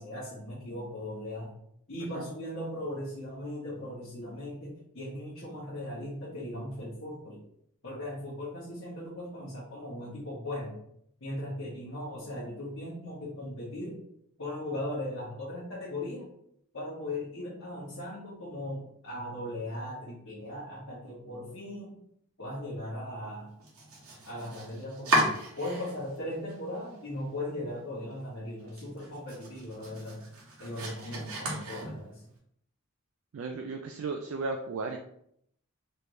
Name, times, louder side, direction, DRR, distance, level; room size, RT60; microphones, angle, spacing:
voice 1, 0.0-1.5 1.9-7.4 7.8-10.7 11.2-14.0 14.4-16.3 16.7-22.0 22.4-23.5 24.3-30.2 30.6-32.2, left 1 dB, 65° left, -8 dB, 1.1 m, -38 dB
Domestic sounds home sounds, 23.6-26.2 26.5-27.2 27.6-27.7 28.1-28.2 28.6-32.3, right 1 dB, 80° right, 1.1 m, -34 dB
voice 2, 33.3-35.0, right 3 dB, 60° right, 3 dB, 0.3 m, -35 dB
3.3 x 2.6 x 3.1 m, 0.71 s
head